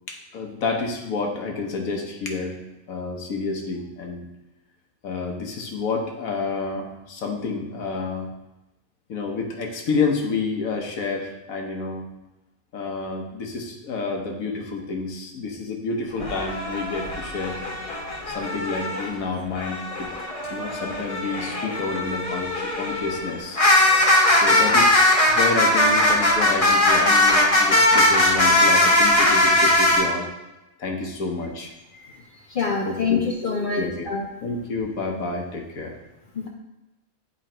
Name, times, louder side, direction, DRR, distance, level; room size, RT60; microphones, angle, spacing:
voice 1, 0.1-2.6 2.9-4.3 5.0-8.3 9.1-12.1 12.7-17.6 18.3-20.1 20.5-23.6 24.3-30.3 30.8-31.7 32.8-33.5 33.8-34.1 34.4-35.9, left 4 dB, 75° left, 2 dB, 1.4 m, -29 dB
sound 1, 16.2-19.1 19.5-30.0, left 1 dB, 30° left, 0.8 m, -20 dB
voice 2, 31.9-32.2 32.5-34.3 36.3-36.5, left 5 dB, 60° left, 0 dB, 0.5 m, -26 dB
8.3 x 3.2 x 4.3 m, 0.98 s
omnidirectional pair, 1.5 m